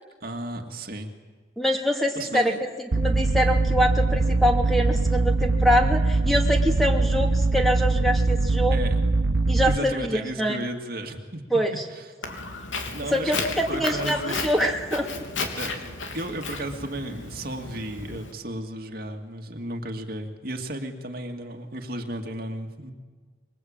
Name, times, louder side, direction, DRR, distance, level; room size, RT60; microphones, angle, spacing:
voice 1, 0.2-1.1 2.2-2.6 8.7-9.0 9.7-11.4 11.9-12.1 12.9-14.4 15.6-22.9, right 1 dB, 50° right, 3 dB, 2.3 m, -34 dB
voice 2, 1.6-2.5 2.8-8.8 9.5-10.6 11.5-11.8 13.1-15.2, equal, ahead, 1 dB, 2.6 m, -24 dB
sound 1, 2.9-9.8, right 3 dB, 70° right, 0.9 m, -22 dB
Walk footsteps, 12.2-18.3, left 3 dB, 85° left, 3.4 m, -34 dB
25.5 x 23.5 x 8.9 m, 1.4 s
head